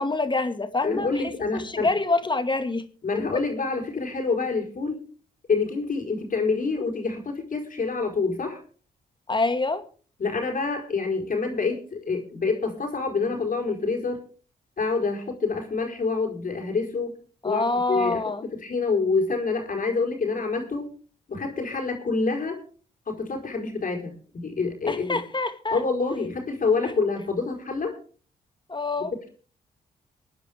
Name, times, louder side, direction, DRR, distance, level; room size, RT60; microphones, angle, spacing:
voice 1, 0.0-1.1 1.5-2.9 9.3-9.8 17.4-18.5 24.9-25.8 28.7-29.1, left 3 dB, 25° left, 2.2 m, -26 dB
voice 2, 0.8-1.9 3.0-5.0 5.5-8.6 10.2-14.2 14.8-17.1 17.4-20.9 21.3-22.6 23.1-25.2 25.7-28.0 29.0-29.3, left 4 dB, 50° left, 4.7 m, -27 dB
24.5 x 9.8 x 3.6 m
supercardioid pair, 55°, 17 cm